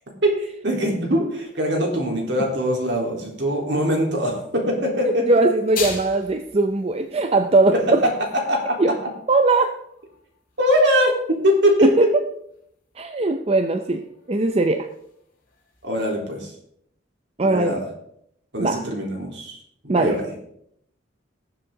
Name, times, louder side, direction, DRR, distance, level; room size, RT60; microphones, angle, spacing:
voice 1, 0.2-5.3 7.7-8.1 8.5-8.8 10.6-11.9 15.8-16.5 17.4-17.9 18.5-19.6 19.8-20.3, equal, 65° right, 0 dB, 3.7 m, -22 dB
sound 1, 1.2-16.1, left 5 dB, 50° left, 5.5 m, -43 dB
voice 2, 5.2-8.0 8.8-9.0 9.3-9.7 11.8-12.1 13.0-14.0 14.3-14.9 17.4-17.8 18.6-18.8 19.9-20.2, right 2 dB, 30° right, 7 dB, 0.6 m, -19 dB
19.5 x 7.4 x 3.8 m, 0.71 s
head